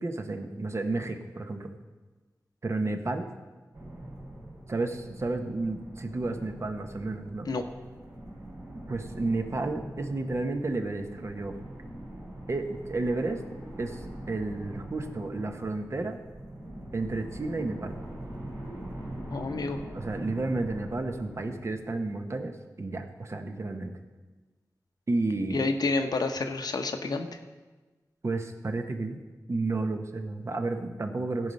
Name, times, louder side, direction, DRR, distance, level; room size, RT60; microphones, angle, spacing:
voice 1, 0.0-1.7 2.6-3.3 4.7-7.5 8.9-11.5 12.5-13.4 13.8-14.0 14.3-16.2 16.9-18.0 19.9-23.9 25.1-25.6 28.2-29.2 29.5-31.5, right 2 dB, 45° right, 5 dB, 1.1 m, -31 dB
sound 1, 3.7-22.2, right 1 dB, 80° right, 4.3 m, -43 dB
voice 2, 19.3-19.8 25.5-27.4, left 3 dB, 80° left, 6 dB, 0.9 m, -29 dB
17.0 x 5.7 x 5.3 m, 1.3 s
wide cardioid pair, 90°, 7 cm